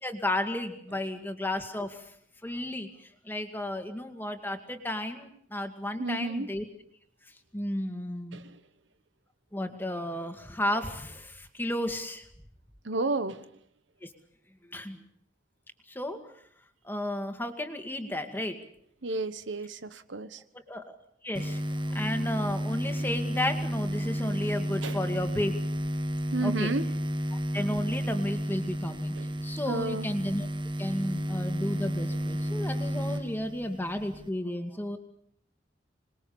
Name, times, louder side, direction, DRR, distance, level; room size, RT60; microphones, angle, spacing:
voice 1, 0.0-2.0 2.4-6.6 7.5-8.4 9.5-12.3 14.0-14.1 14.7-15.0 15.9-16.3 16.8-18.6 20.5-21.0 21.2-25.5 26.4-26.7 27.5-29.1 29.4-30.5 30.8-35.0, left 1 dB, 10° left, 2.2 m, -33 dB
voice 2, 6.0-6.5 8.3-8.6 12.8-13.5 19.0-20.4 24.8-25.0 26.3-26.9 29.2-29.3 29.7-30.1, right 3 dB, 85° right, 1.2 m, -32 dB
sound 1, 21.3-34.3, equal, 25° right, 1.3 m, -32 dB
26.5 x 21.0 x 7.2 m
head